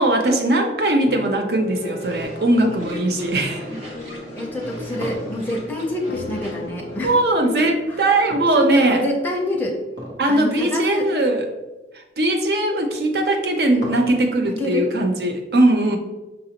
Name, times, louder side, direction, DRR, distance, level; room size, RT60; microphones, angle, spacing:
voice 1, 0.0-3.7 4.8-4.9 7.0-9.0 10.2-11.4 11.9-16.0, right 1 dB, 60° right, 4 dB, 0.6 m, -20 dB
sound 1, 1.1-9.2 9.8-9.9 10.1-10.4, left 2 dB, 60° left, 0.4 m, -38 dB
sound 2, 2.0-7.2, left 1 dB, 40° right, 0.9 m, -36 dB
voice 2, 4.3-7.2 7.4-8.2 8.5-9.8 10.3-11.1 14.5-14.9, left 1 dB, 10° left, -1 dB, 0.6 m, -27 dB
sound 3, 4.6-6.9 8.3-9.2 9.9-10.3 10.7-10.8 11.5-11.6 13.0-14.5, equal, 75° right, 1.2 m, -35 dB
5.8 x 2.6 x 2.9 m, 1.1 s
head